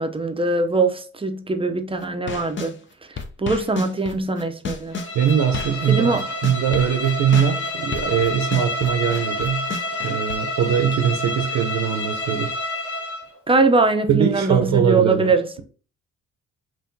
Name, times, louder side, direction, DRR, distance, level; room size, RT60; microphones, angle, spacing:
voice 1, 0.0-2.7 3.1-5.0 5.9-6.3 13.5-15.5, right 3 dB, 20° right, 0.6 m, -21 dB
sound 1, 2.0-2.7 3.2-5.9 6.1-10.3, left 4 dB, 40° left, 0.7 m, -32 dB
Bowed string instrument, 4.9-13.3, left 2 dB, 70° left, 1.8 m, -28 dB
voice 2, 5.1-9.7 10.0-12.5 14.1-15.3, right 8 dB, 70° right, 0.7 m, -21 dB
5.7 x 2.6 x 2.7 m
cardioid pair, 90°, 30 cm